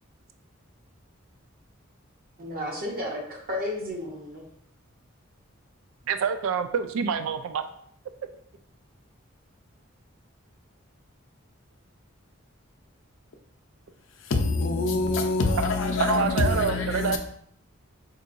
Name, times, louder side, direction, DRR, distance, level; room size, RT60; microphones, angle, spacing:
voice 1, 2.4-4.5, left 1 dB, 45° right, 0.7 m, -33 dB
voice 2, 6.1-7.6 16.0-17.2, right 6 dB, 75° right, 0.3 m, -26 dB
voice 3, 14.2-17.2, left 3 dB, 65° left, 0.5 m, -25 dB
4.5 x 2.8 x 2.5 m
head